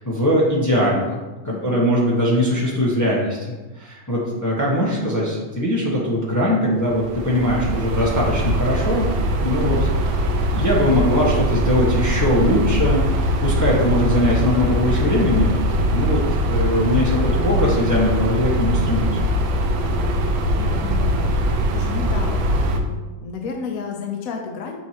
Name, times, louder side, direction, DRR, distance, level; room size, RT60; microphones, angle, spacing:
voice 1, 0.0-9.1 9.4-9.9 10.5-16.2 16.5-19.2, equal, 15° left, -5 dB, 0.8 m, -21 dB
voice 2, 1.4-1.9 20.6-21.1 21.7-22.5 22.8-24.8, left 6 dB, 65° left, 2 dB, 0.9 m, -31 dB
sound 1, 6.9-22.8, equal, 75° right, 1.4 m, -21 dB
7.3 x 4.6 x 2.9 m, 1.2 s
omnidirectional pair, 2.2 m